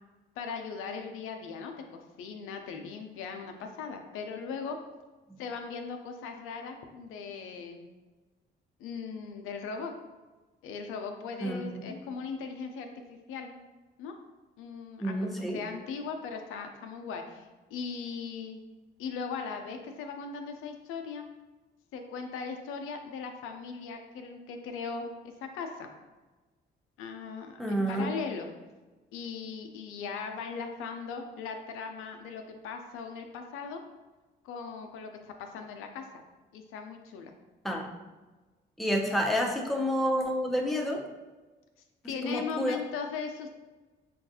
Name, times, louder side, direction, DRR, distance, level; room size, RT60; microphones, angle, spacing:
voice 1, 0.4-4.8 5.4-7.9 8.8-9.9 10.6-13.6 14.0-14.1 14.6-15.2 15.5-18.6 19.0-21.3 21.9-25.1 25.5-25.9 27.0-28.5 29.1-33.8 34.4-36.1 36.5-37.3 38.9-39.2 42.1-43.6, left 5 dB, 85° left, 5 dB, 0.4 m, -39 dB
voice 2, 11.4-12.0 15.0-15.6 27.6-28.1 37.6-37.9 38.8-41.0 42.2-42.8, equal, ahead, 1 dB, 0.6 m, -29 dB
5.1 x 2.3 x 2.7 m, 1.2 s
supercardioid pair, 70°, 21 cm